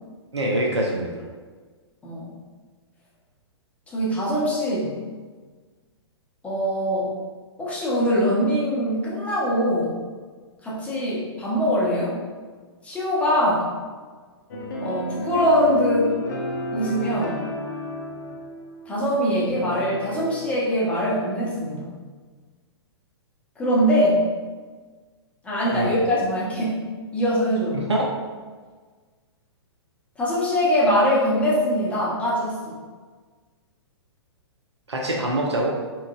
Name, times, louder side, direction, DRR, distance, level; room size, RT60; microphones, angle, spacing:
voice 1, 0.3-1.1 25.7-26.0 27.7-28.1 34.9-35.7, right 1 dB, 80° right, -1 dB, 0.5 m, -24 dB
voice 2, 3.9-5.0 6.4-7.1 7.6-10.0 10.6-12.2 12.8-13.7 14.8-16.1 16.7-17.4 18.9-21.9 23.6-24.2 25.4-26.8 27.1-27.8 30.2-32.7, equal, 10° left, -7 dB, 0.7 m, -22 dB
sound 1, 14.5-20.6, left 2 dB, 45° left, 0.5 m, -32 dB
3.6 x 3.0 x 2.3 m, 1.5 s
figure-of-eight pair, 115°, 14 cm